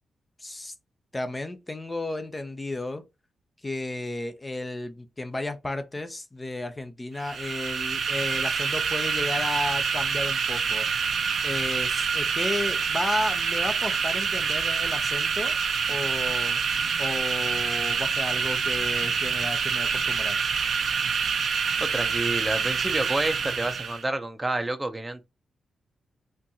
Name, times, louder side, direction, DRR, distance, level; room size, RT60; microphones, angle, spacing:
voice 1, 0.4-0.7 1.1-3.1 3.6-10.9 11.4-15.6 15.9-16.6 17.0-20.4, left 2 dB, 20° left, 0.7 m, -33 dB
sound 1, 7.2-24.0, right 6 dB, 70° right, 0.6 m, -26 dB
voice 2, 21.8-25.2, right 2 dB, 20° right, 0.6 m, -29 dB
4.3 x 2.6 x 2.8 m
cardioid pair, 70°, 0 cm